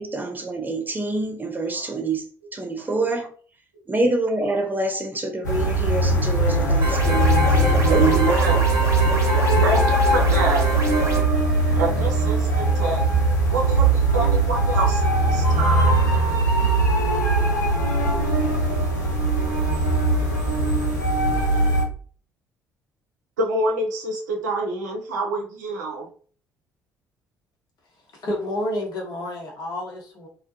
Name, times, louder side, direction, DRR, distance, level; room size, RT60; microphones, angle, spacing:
voice 1, 0.0-2.3 2.5-3.3 3.9-8.3, right 2 dB, 20° right, 0.6 m, -26 dB
sound 1, 5.4-21.8, right 2 dB, 85° left, 0.5 m, -20 dB
sound 2, 6.8-11.2, right 1 dB, 35° right, 1.1 m, -27 dB
voice 2, 7.8-8.7 9.6-10.7 11.8-13.1 13.5-16.0 23.4-26.1, right 3 dB, 75° right, 0.5 m, -26 dB
voice 3, 28.2-30.3, left 1 dB, 45° left, 0.9 m, -29 dB
2.2 x 2.1 x 2.7 m
figure-of-eight pair, 50°, 9 cm